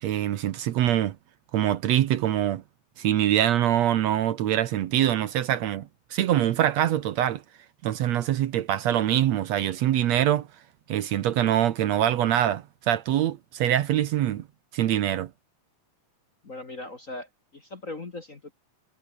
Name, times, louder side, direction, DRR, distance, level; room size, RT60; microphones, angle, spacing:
voice 1, 0.0-1.2 1.5-2.6 3.0-7.4 7.8-10.5 10.9-14.5 14.7-15.3, right 11 dB, 65° right, 2.0 m, -24 dB
voice 2, 16.4-18.5, left 2 dB, 30° left, 1.7 m, -39 dB
omnidirectional pair, 3.5 m